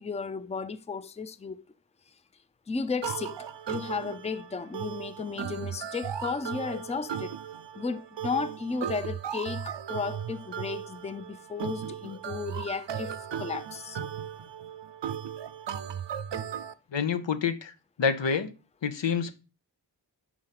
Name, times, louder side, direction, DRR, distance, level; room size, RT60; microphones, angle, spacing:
voice 1, 0.0-1.6 2.7-3.4 3.7-7.4 7.8-14.0, left 5 dB, 15° left, 0.4 m, -34 dB
sound 1, 3.0-16.7, right 8 dB, 80° right, 0.6 m, -36 dB
voice 2, 16.9-17.7 18.0-18.5 18.8-19.3, left 6 dB, 85° left, 0.8 m, -27 dB
5.1 x 4.7 x 5.7 m
wide cardioid pair, 50°, 42 cm